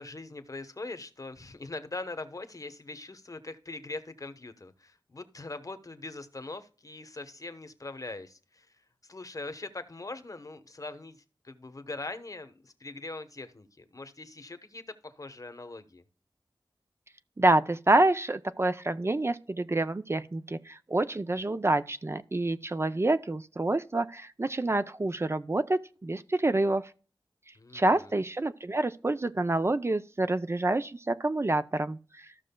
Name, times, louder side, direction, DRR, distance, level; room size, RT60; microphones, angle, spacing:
voice 1, 0.0-8.8 9.0-16.0 27.5-28.2, left 2 dB, 45° left, 1.0 m, -42 dB
voice 2, 17.4-26.9 27.7-32.3, right 2 dB, 30° right, 0.5 m, -27 dB
14.5 x 6.2 x 2.2 m
wide cardioid pair, 75°, 8 cm